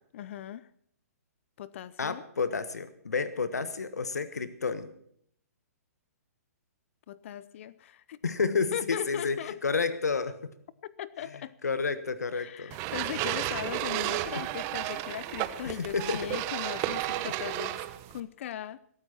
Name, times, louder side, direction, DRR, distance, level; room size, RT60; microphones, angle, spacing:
voice 1, 0.1-0.7 1.6-2.2 7.1-8.2 8.7-9.6 10.8-11.5 12.3-17.8 18.1-18.8, left 11 dB, 50° left, 19 dB, 0.7 m, -38 dB
voice 2, 2.0-4.9 8.2-10.5 11.6-12.8 14.3-14.4 15.6-16.4 17.0-17.3, left 4 dB, 85° left, 13 dB, 1.4 m, -31 dB
sound 1, 12.7-18.2, right 15 dB, 30° right, 1.2 m, -33 dB
22.0 x 12.5 x 4.4 m, 0.66 s
hypercardioid pair, 130°, 9 cm